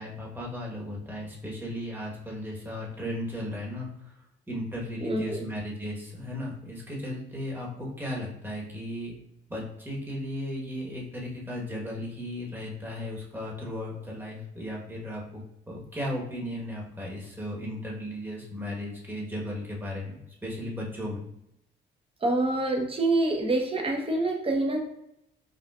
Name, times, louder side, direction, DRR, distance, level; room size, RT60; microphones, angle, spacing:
voice 1, 0.0-9.1 9.5-15.4 15.7-21.2, left 1 dB, 10° right, -3 dB, 1.2 m, -36 dB
voice 2, 5.0-5.4 22.2-24.8, right 2 dB, 30° right, 2 dB, 0.9 m, -26 dB
5.0 x 2.6 x 2.4 m, 0.79 s
cardioid pair, 90°, 20 cm